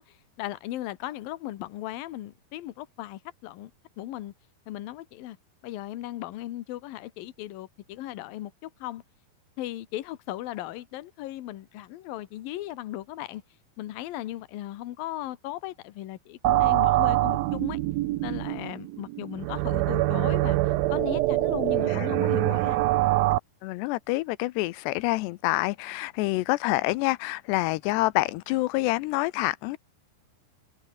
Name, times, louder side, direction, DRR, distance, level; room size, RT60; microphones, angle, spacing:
voice 1, 0.0-3.7 4.0-4.3 4.7-5.4 5.6-9.0 9.6-13.4 13.8-17.8 18.2-20.6 20.9-22.8, left 14 dB, 65° left, 2.8 m, -37 dB
sound 1, 16.4-23.4, right 17 dB, 75° right, 2.3 m, -24 dB
voice 2, 23.6-29.8, left 20 dB, 90° left, 2.8 m, -27 dB
omnidirectional pair, 4.8 m